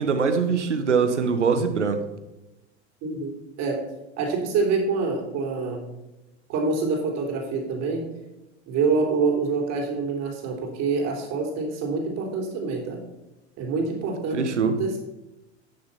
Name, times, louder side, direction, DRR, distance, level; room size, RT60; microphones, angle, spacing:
voice 1, 0.0-2.0 14.3-14.8, right 5 dB, 85° right, 1.2 m, -23 dB
voice 2, 3.0-3.3 3.6-3.9 4.2-5.8 6.5-8.0 8.7-13.0 13.6-15.0, right 4 dB, 50° right, 3.4 m, -26 dB
11.5 x 6.8 x 5.7 m
figure-of-eight pair, 80°, 35 cm